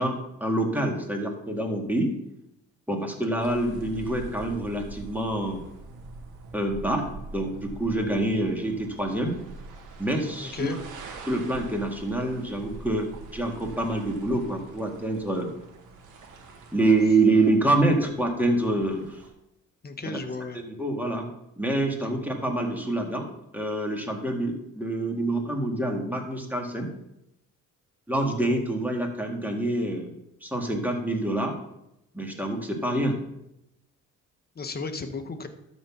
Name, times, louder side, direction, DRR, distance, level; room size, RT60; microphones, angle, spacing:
voice 1, 0.0-2.1 2.9-5.6 6.5-7.0 7.3-9.4 10.0-10.7 11.3-15.5 16.7-19.2 20.1-20.2 20.6-21.3 21.6-23.3 23.5-26.9 28.1-30.1 30.4-31.6 32.1-33.2, right 2 dB, 5° right, 2 dB, 2.0 m, -26 dB
sound 1, 3.4-19.3, right 3 dB, 85° right, 1.6 m, -44 dB
voice 2, 10.4-10.8 19.8-20.6 34.5-35.5, left 4 dB, 30° left, 7 dB, 1.2 m, -34 dB
12.5 x 4.2 x 6.0 m, 0.84 s
cardioid pair, 90°, 30 cm